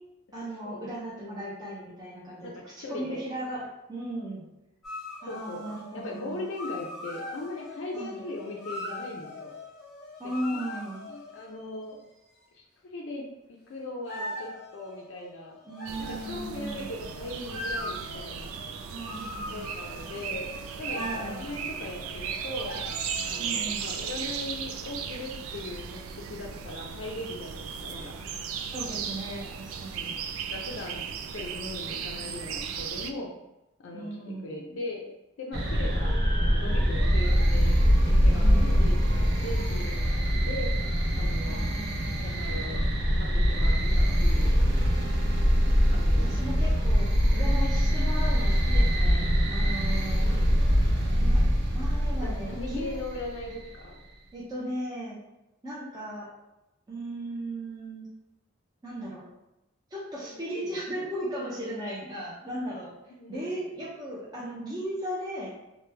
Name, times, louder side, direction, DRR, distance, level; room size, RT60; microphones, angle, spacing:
voice 1, 0.3-2.5 2.8-3.6 3.9-4.4 5.2-6.5 7.9-8.2 10.2-11.1 15.7-16.9 18.9-19.6 20.9-21.4 23.4-24.0 28.7-30.2 33.9-34.8 38.3-38.9 41.4-42.2 46.2-50.4 51.2-51.4 51.7-53.0 54.3-55.2 55.6-56.3 56.9-58.1 58.8-59.2 59.9-62.9 63.3-65.5, right 1 dB, 20° right, -8 dB, 0.5 m, -36 dB
voice 2, 2.4-3.2 5.3-9.6 10.5-10.6 11.1-12.0 12.5-12.6 12.9-15.6 16.0-18.5 19.5-20.5 20.8-22.8 23.2-28.2 29.8-30.2 30.5-33.3 33.8-35.0 35.4-41.6 42.2-42.8 43.2-44.5 45.9-46.5 52.2-54.0 60.2-60.8 63.1-63.5, left 2 dB, 65° left, -1 dB, 0.4 m, -39 dB
sound 1, 4.8-11.8 14.1-23.7, left 1 dB, ahead, 1.0 m, -41 dB
sound 2, 15.9-33.1, right 7 dB, 80° right, 0.3 m, -36 dB
sound 3, 35.5-53.5, equal, 55° right, 0.7 m, -23 dB
3.1 x 2.1 x 3.2 m, 0.94 s
head